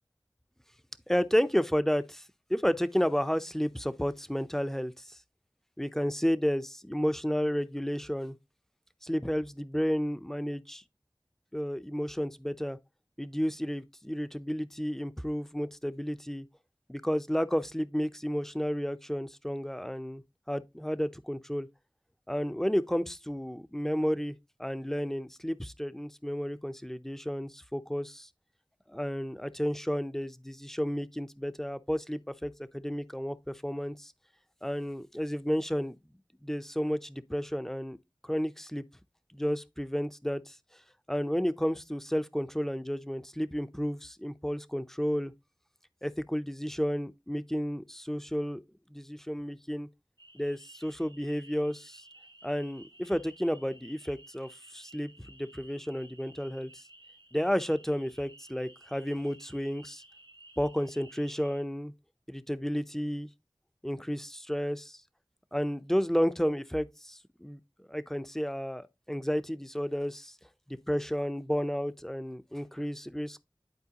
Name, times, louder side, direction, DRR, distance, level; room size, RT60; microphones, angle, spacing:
voice 1, 1.1-2.2 2.5-5.2 5.8-8.4 9.0-10.8 11.5-12.8 13.2-16.5 16.9-20.2 20.5-21.7 22.3-28.3 28.9-34.1 34.6-35.9 36.4-38.0 38.2-38.8 39.3-40.6 41.1-45.3 46.0-48.6 48.9-49.9 50.3-52.0 52.4-56.8 57.3-60.0 60.6-61.9 62.3-63.3 63.8-65.0 65.5-67.6 67.9-70.4 70.7-73.4, equal, 5° left, 0.6 m, -32 dB
sound 1, 50.2-61.6, right 1 dB, 65° right, 1.2 m, -55 dB
10.5 x 4.5 x 2.9 m
wide cardioid pair, 40°, 8 cm